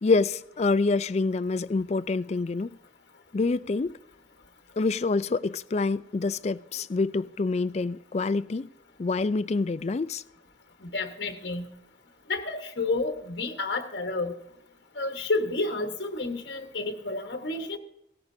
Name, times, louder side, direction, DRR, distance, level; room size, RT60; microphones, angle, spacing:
voice 1, 0.0-2.8 3.3-4.0 4.8-8.7 9.0-10.2, left 3 dB, 35° left, 0.3 m, -26 dB
voice 2, 10.8-11.7 12.3-14.4 14.9-17.8, left 3 dB, 60° left, 1.3 m, -30 dB
17.0 x 14.0 x 2.7 m
head